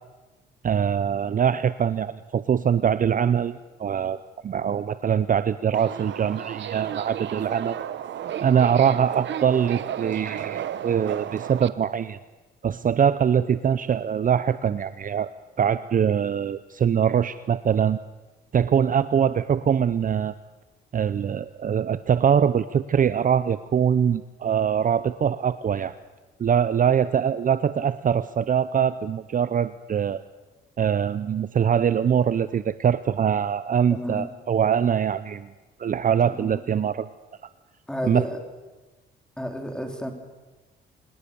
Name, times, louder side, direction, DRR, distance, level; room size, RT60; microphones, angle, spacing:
voice 1, 0.6-4.2 4.4-7.8 8.4-12.2 12.6-15.3 15.6-18.0 18.5-20.4 20.9-26.0 26.4-30.2 30.8-35.5 35.8-37.1 38.0-38.3, right 8 dB, 45° right, 14 dB, 0.7 m, -23 dB
Subway metro underground, 5.7-11.7, right 10 dB, 65° right, 1.1 m, -33 dB
voice 2, 33.9-34.3 36.2-36.6 37.9-38.4 39.4-40.1, equal, 5° left, 4 dB, 4.3 m, -31 dB
27.0 x 20.5 x 7.0 m, 1.2 s
cardioid pair, 90°, 20 cm